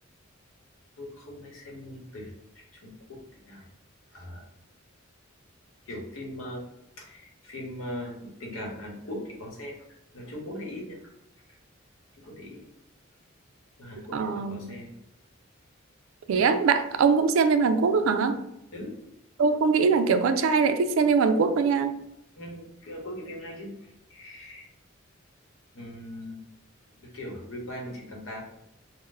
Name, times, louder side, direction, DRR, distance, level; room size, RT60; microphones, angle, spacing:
voice 1, 1.0-3.6 4.1-4.4 5.9-6.6 7.0-9.8 10.1-11.1 12.2-12.6 13.8-14.9 18.7-19.0 22.4-24.7 25.7-26.4 27.1-28.4, left 1 dB, 80° left, -1 dB, 0.9 m, -40 dB
voice 2, 14.1-14.7 16.3-18.4 19.4-21.9, right 5 dB, 85° right, 9 dB, 0.3 m, -22 dB
2.6 x 2.1 x 3.7 m, 0.83 s
head